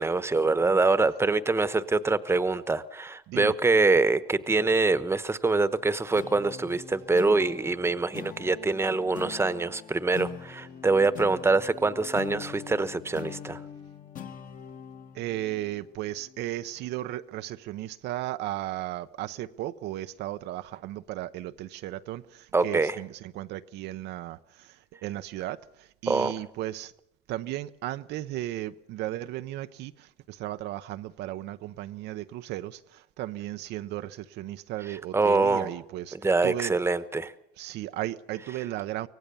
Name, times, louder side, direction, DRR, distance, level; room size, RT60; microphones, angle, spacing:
voice 1, 0.0-13.6 22.5-23.0 26.1-26.3 35.1-35.7 36.2-37.3, right 3 dB, 15° right, 1.0 m, -24 dB
sound 1, 6.2-17.0, left 8 dB, 50° left, 1.8 m, -43 dB
voice 2, 15.1-26.9 27.3-36.7 37.6-39.1, right 14 dB, 80° right, 0.7 m, -35 dB
24.5 x 17.5 x 6.9 m
cardioid pair, 110°, 17 cm